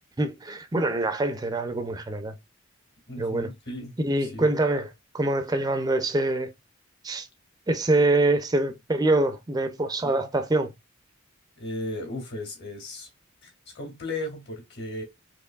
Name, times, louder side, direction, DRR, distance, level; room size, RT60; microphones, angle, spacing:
voice 1, 0.2-2.3 3.2-3.5 4.0-4.9 5.1-6.5 7.0-7.3 7.7-10.7, right 2 dB, 20° right, 0.5 m, -25 dB
voice 2, 3.1-3.9 4.2-4.5 10.0-10.1 11.6-13.1 13.4-15.0, left 1 dB, 55° left, 2.1 m, -35 dB
4.5 x 3.1 x 2.3 m
head